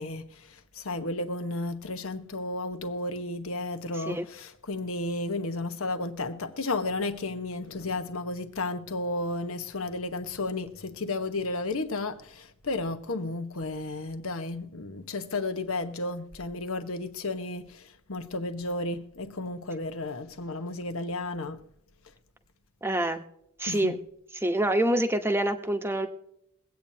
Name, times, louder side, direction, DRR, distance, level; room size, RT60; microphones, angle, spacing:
voice 1, 0.0-21.6 23.6-24.0, left 2 dB, 75° left, 1.1 m, -33 dB
voice 2, 22.8-23.2 23.6-24.0 24.4-26.1, right 1 dB, 10° right, 1.0 m, -26 dB
23.0 x 8.7 x 2.8 m
head